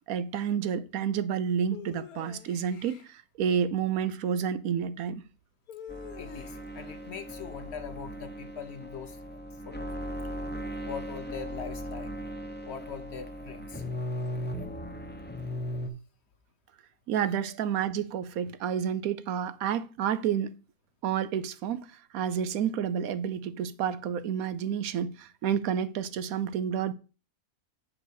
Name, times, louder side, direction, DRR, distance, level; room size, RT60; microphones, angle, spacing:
voice 1, 0.1-5.2 17.1-20.6 21.0-21.9 22.1-26.9, right 8 dB, 75° right, 1.1 m, -30 dB
sound 1, 1.7-3.1 5.7-6.8, left 8 dB, 85° left, 1.4 m, -46 dB
sound 2, 5.9-15.9, equal, 10° left, 0.7 m, -38 dB
voice 2, 6.2-9.2 9.6-9.9 10.8-12.1 12.6-13.9, left 7 dB, 55° left, 0.8 m, -41 dB
7.4 x 3.9 x 6.4 m
omnidirectional pair, 1.5 m